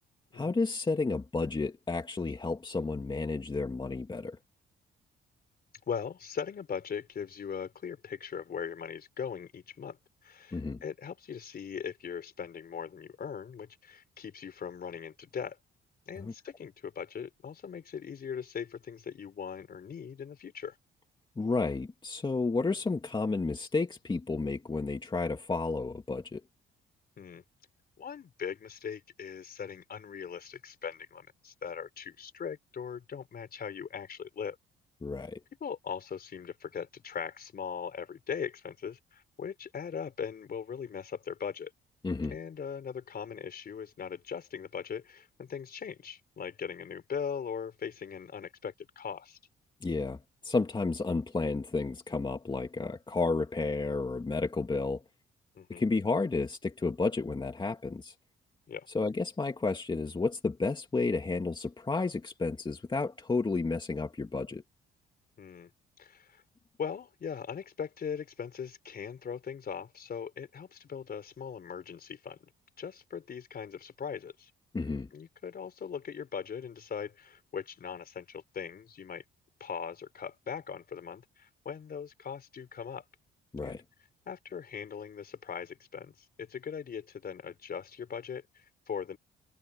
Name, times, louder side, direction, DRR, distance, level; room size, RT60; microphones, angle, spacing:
voice 1, 0.3-4.4 10.5-10.8 16.2-16.3 21.4-26.4 35.0-35.4 42.0-42.3 49.8-55.0 55.8-58.1 58.9-64.6 74.7-75.1 83.5-83.8, left 3 dB, 25° left, 2.2 m, -31 dB
voice 2, 5.9-10.0 10.2-15.6 16.1-20.8 27.2-27.4 28.0-34.6 35.6-41.7 42.3-49.4 55.5-55.8 58.7-58.9 65.4-65.7 66.0-66.4 66.8-72.5 72.8-74.5 75.1-79.2 79.6-83.1 83.6-83.8 84.3-89.2, left 7 dB, 50° left, 4.7 m, -40 dB
cardioid pair, 90°, 20 cm